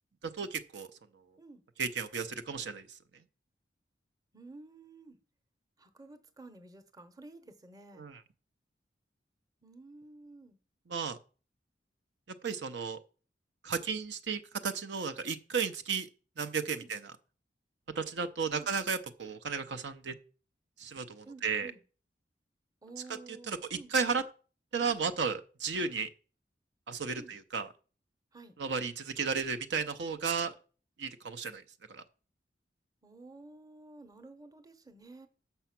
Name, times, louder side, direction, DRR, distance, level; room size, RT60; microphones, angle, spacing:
voice 1, 0.4-0.9 1.8-3.0 8.0-8.2 10.9-11.2 12.4-13.0 13.6-16.1 16.4-17.1 18.0-20.1 20.8-21.7 23.5-24.2 24.7-26.1 26.9-27.7 28.6-30.5 31.0-31.6 31.9-32.0, right 5 dB, 80° right, 0.7 m, -34 dB
voice 2, 4.3-5.2 5.8-8.1 9.6-10.6 16.7-16.9 18.5-18.7 21.3-21.8 22.8-23.9 27.1-27.4 28.3-28.6 33.0-35.3, right 2 dB, 20° right, 0.8 m, -52 dB
6.9 x 5.6 x 5.9 m
head